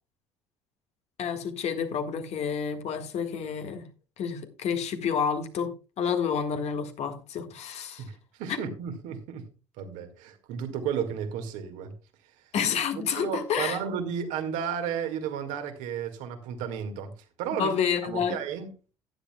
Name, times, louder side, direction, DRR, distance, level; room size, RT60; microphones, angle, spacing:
voice 1, 1.2-3.9 4.2-8.0 8.5-8.6 12.5-13.8 17.6-18.4, left 7 dB, 50° left, 1.7 m, -29 dB
voice 2, 8.0-9.5 9.8-11.9 12.9-17.1 17.4-17.7 18.0-18.7, right 8 dB, 65° right, 1.9 m, -33 dB
15.0 x 10.0 x 2.3 m
figure-of-eight pair, 55°, 14 cm